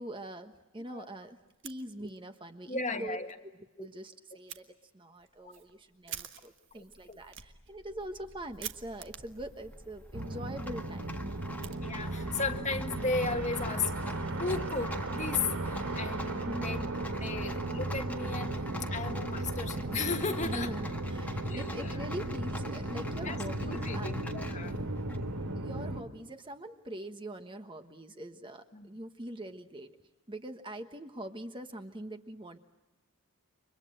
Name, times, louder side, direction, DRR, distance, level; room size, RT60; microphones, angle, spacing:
voice 1, 0.0-1.4 1.6-3.2 3.4-4.6 4.9-11.0 13.6-13.8 16.4-16.8 20.4-24.2 25.6-30.0 30.3-32.6, right 1 dB, 20° right, 7 dB, 1.2 m, -43 dB
Fire, 1.5-2.4 2.7-2.8 3.3-3.4 4.5-4.6 5.2-12.3, right 10 dB, 55° right, 1.5 m, -49 dB
voice 2, 2.7-3.3 3.8-3.9 5.4-5.5 6.8-7.2 11.8-13.9 14.4-20.7 21.4-21.9 23.2-23.4 23.6-24.7 28.7-28.9, left 4 dB, 30° left, 6 dB, 1.6 m, -35 dB
Rattle, 6.9-25.5, left 1 dB, 5° left, 1.5 m, -46 dB
sound 1, 10.1-26.0, right 2 dB, 90° right, 2.8 m, -36 dB
30.0 x 25.0 x 7.8 m, 1.1 s
head